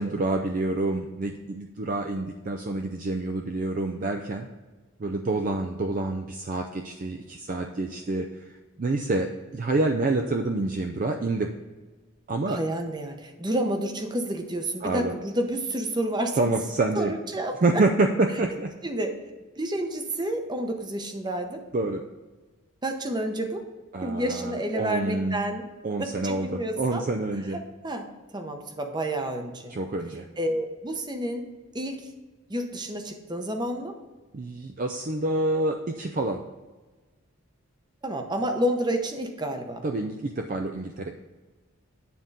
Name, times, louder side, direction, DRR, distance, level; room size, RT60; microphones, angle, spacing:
voice 1, 0.0-4.5 5.0-8.5 8.8-11.5 12.3-12.6 14.8-15.1 16.4-17.1 17.6-18.7 21.7-22.0 23.9-25.4 25.8-27.6 29.7-30.3 34.3-36.4 39.8-41.1, right 2 dB, 40° right, 4 dB, 0.4 m, -27 dB
voice 2, 12.5-16.4 17.0-17.5 18.8-19.1 19.6-21.6 22.8-23.6 24.0-25.7 26.0-27.1 27.5-28.1 28.3-29.8 30.4-31.5 31.7-32.1 32.5-33.9 38.0-39.8, right 1 dB, 20° right, 4 dB, 0.8 m, -30 dB
9.3 x 3.7 x 5.3 m, 1.3 s
head